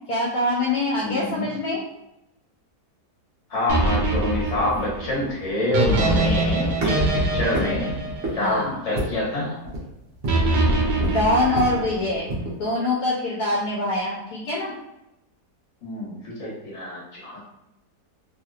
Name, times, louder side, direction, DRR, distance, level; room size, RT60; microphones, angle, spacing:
voice 1, 0.1-1.9 8.3-8.8 11.0-14.7, left 1 dB, 75° left, -5 dB, 1.1 m, -24 dB
voice 2, 1.0-1.4 3.5-7.9 8.4-9.6 15.8-17.4, left 1 dB, 45° left, -6 dB, 1.4 m, -27 dB
sound 1, 3.7-9.0 10.3-12.2, right 2 dB, 85° right, 1.2 m, -23 dB
sound 2, 3.9-12.6, right 1 dB, 55° right, 1.1 m, -32 dB
3.1 x 2.9 x 2.3 m, 0.87 s
omnidirectional pair, 1.7 m